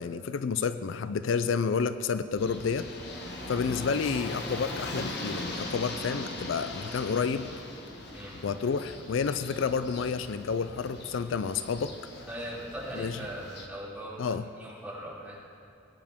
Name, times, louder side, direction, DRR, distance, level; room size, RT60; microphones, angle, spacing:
voice 1, 0.0-2.9 3.5-7.5 8.4-11.9 13.0-13.2 14.2-14.4, left 5 dB, 70° left, 12 dB, 0.4 m, -30 dB
sound 1, 2.4-13.7, left 2 dB, 55° left, 1.3 m, -40 dB
voice 2, 12.3-15.4, right 1 dB, 10° right, -8 dB, 3.1 m, -40 dB
19.5 x 9.5 x 3.6 m, 2.7 s
head